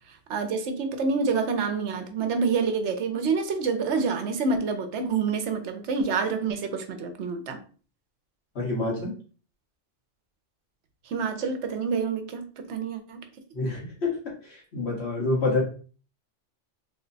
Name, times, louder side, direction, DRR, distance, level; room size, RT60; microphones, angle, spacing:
voice 1, 0.3-7.6 11.1-13.2, right 4 dB, 70° right, 0.9 m, -27 dB
voice 2, 8.5-9.2 13.5-15.6, left 2 dB, 60° left, 1.5 m, -28 dB
3.3 x 2.1 x 3.9 m
omnidirectional pair, 1.3 m